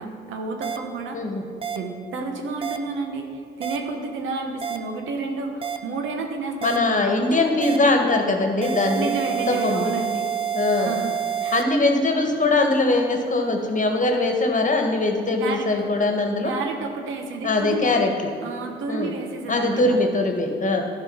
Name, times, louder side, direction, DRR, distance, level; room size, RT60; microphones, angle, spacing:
voice 1, 0.0-1.2 1.7-7.5 8.9-10.3 10.8-11.1 11.4-11.6 15.4-15.9 16.4-17.9 18.4-20.0, right 3 dB, 75° right, 4 dB, 1.1 m, -31 dB
sound 1, 0.6-0.8 1.6-1.8 2.6-2.8 3.6-3.8 4.6-4.8 5.6-5.8 6.6-6.8 7.6-7.8 8.6-11.6, right 9 dB, 25° right, 0.8 m, -27 dB
voice 2, 6.6-9.1 9.5-9.9 10.5-10.9 11.5-16.5 17.4-18.3 18.9-19.1 19.5-20.8, left 2 dB, 40° left, 3 dB, 1.5 m, -21 dB
11.0 x 5.2 x 5.6 m, 2.3 s
supercardioid pair, 50°, 20 cm